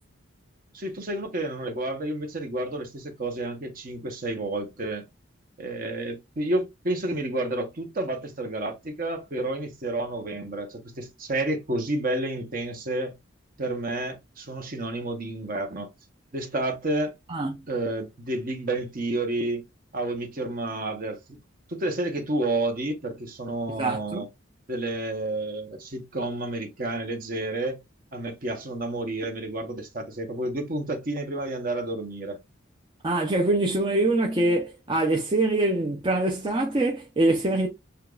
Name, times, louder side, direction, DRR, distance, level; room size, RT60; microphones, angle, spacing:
voice 1, 0.7-5.1 5.6-13.2 13.6-15.9 16.3-17.1 17.7-19.6 19.9-21.4 21.7-24.3 24.7-27.8 28.1-32.4, right 2 dB, 45° right, 0.9 m, -30 dB
voice 2, 23.8-24.3 33.0-37.7, right 2 dB, 25° right, 0.5 m, -24 dB
6.6 x 2.3 x 2.4 m
head